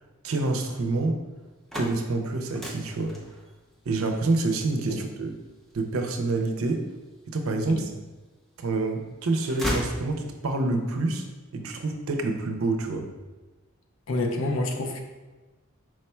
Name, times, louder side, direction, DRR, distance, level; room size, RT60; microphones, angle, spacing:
voice 1, 0.2-1.2 1.7-3.2 3.9-5.3 5.7-6.8 7.3-7.9 8.6-11.3 11.5-13.1, right 2 dB, 80° right, 4 dB, 0.5 m, -27 dB
sound 1, 1.4-7.4 7.9-8.7 9.0-10.6, equal, ahead, 0.5 m, -37 dB
voice 2, 14.1-15.0, left 2 dB, 70° left, 3 dB, 0.6 m, -28 dB
4.7 x 2.2 x 4.2 m, 1.2 s
head